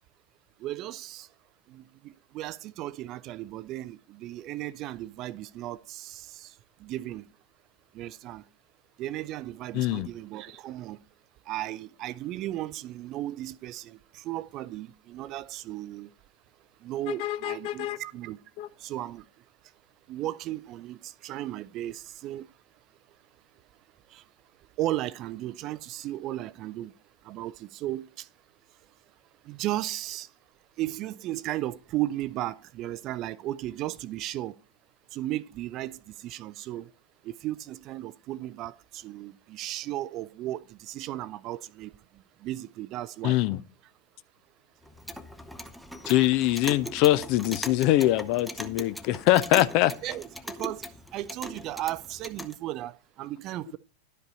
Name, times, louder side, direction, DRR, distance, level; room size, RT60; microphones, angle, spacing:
voice 1, 0.6-1.3 1.7-6.5 6.8-7.2 7.9-8.4 9.0-11.0 11.5-16.1 16.8-18.4 18.8-19.2 20.1-22.5 24.1-24.2 24.8-26.9 27.3-28.2 29.5-30.3 30.8-34.5 35.1-36.9 37.2-41.9 42.4-43.4 50.0-50.3 50.6-50.9 51.1-53.8, right 14 dB, 35° right, 0.4 m, -35 dB
voice 2, 9.7-10.1 17.1-18.0 18.6-18.7 43.2-43.6 46.1-49.9, left 15 dB, 45° left, 0.4 m, -23 dB
Clock, 44.8-52.6, equal, ahead, 0.7 m, -40 dB
11.5 x 5.3 x 4.1 m
figure-of-eight pair, 90°, 0 cm